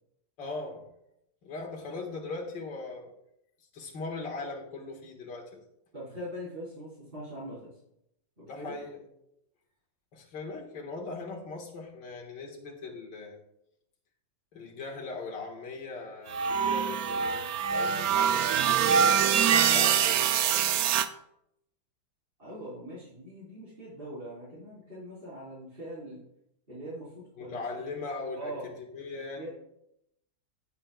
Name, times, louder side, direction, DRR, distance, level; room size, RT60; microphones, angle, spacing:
voice 1, 0.4-0.8 1.4-3.1 3.7-5.6 8.4-9.0 10.1-13.4 14.5-20.9 27.4-29.5, left 3 dB, 75° left, 0 dB, 2.3 m, -40 dB
voice 2, 5.9-7.8 8.4-8.8 17.2-17.3 22.4-26.2 26.7-27.8 28.3-28.8 29.4-29.5, equal, 30° right, -12 dB, 3.9 m, -42 dB
sound 1, 16.3-21.1, right 8 dB, 70° right, 0.9 m, -24 dB
18.0 x 7.6 x 2.3 m, 0.79 s
omnidirectional pair, 2.0 m